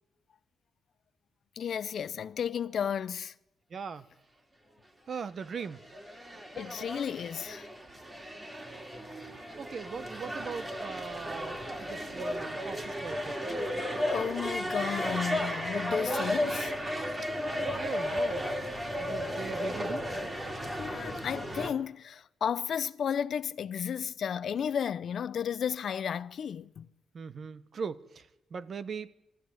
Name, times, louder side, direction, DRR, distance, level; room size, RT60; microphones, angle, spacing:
voice 1, 1.6-3.3 6.6-7.7 14.1-16.7 20.7-26.9, left 8 dB, 65° left, 0.6 m, -33 dB
voice 2, 3.7-4.1 5.1-5.8 9.6-13.5 17.3-18.7 19.0-20.0 27.1-29.1, right 6 dB, 55° right, 1.0 m, -40 dB
sound 1, 5.6-21.7, equal, 20° right, 2.5 m, -34 dB
21.0 x 13.5 x 9.6 m
cardioid pair, 110°, 0 cm